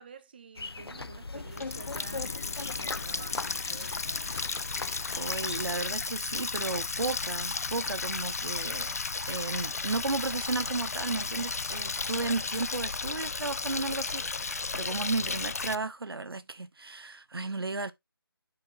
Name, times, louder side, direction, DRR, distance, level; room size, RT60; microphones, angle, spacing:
voice 1, 0.0-4.3, right 6 dB, 25° right, 0.6 m, -50 dB
sound 1, 0.5-5.8, left 3 dB, 75° left, 0.7 m, -40 dB
Water tap faucet, 1.3-15.8, left 4 dB, 40° left, 0.4 m, -34 dB
voice 2, 5.2-9.0 9.3-17.9, right 3 dB, 70° right, 0.9 m, -34 dB
7.9 x 5.8 x 2.9 m
figure-of-eight pair, 165°, 13 cm